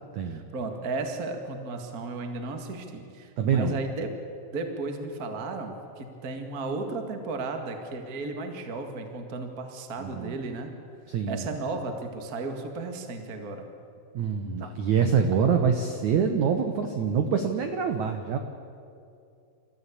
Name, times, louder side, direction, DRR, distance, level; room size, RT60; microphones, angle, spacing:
voice 1, 0.3-4.1 4.5-10.7 11.3-13.7, right 3 dB, 45° right, 5 dB, 1.1 m, -34 dB
voice 2, 3.4-3.8 10.0-10.4 11.1-11.4 14.1-18.4, right 6 dB, 75° right, 6 dB, 1.7 m, -25 dB
28.5 x 14.0 x 8.5 m, 2.5 s
omnidirectional pair, 4.9 m